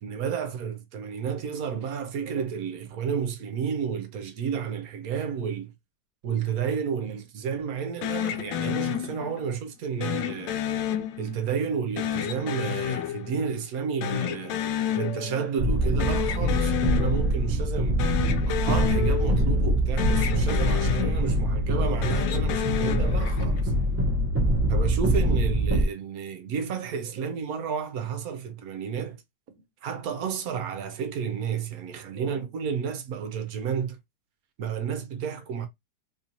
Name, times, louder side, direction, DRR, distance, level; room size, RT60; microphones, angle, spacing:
voice 1, 0.0-5.7 6.2-10.6 11.2-14.6 14.9-18.0 18.4-23.7 24.7-29.2 29.6-34.0 34.6-35.7, right 7 dB, 65° right, 1.0 m, -31 dB
sound 1, 8.0-9.5 10.0-11.6 12.0-13.8 14.0-15.5 15.8-17.5 17.9-19.7 20.0-21.6 21.9-23.7, left 10 dB, 90° left, 1.3 m, -30 dB
sound 2, 15.6-25.8, equal, 10° right, 0.7 m, -24 dB
3.7 x 2.7 x 2.8 m
omnidirectional pair, 2.0 m